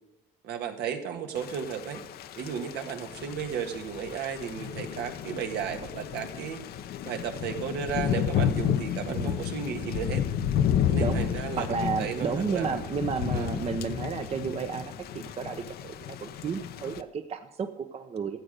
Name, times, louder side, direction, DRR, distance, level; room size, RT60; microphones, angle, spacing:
voice 1, 0.4-2.0 2.4-6.6 7.0-10.2 10.9-12.8 13.3-13.5, right 7 dB, 75° right, 5 dB, 1.6 m, -34 dB
Thunder / Rain, 1.4-17.0, left 9 dB, 65° left, 0.7 m, -32 dB
voice 2, 9.0-9.4 10.9-18.4, right 6 dB, 40° right, 7 dB, 0.8 m, -32 dB
14.0 x 7.7 x 6.6 m, 1.0 s
cardioid pair, 110°, 17 cm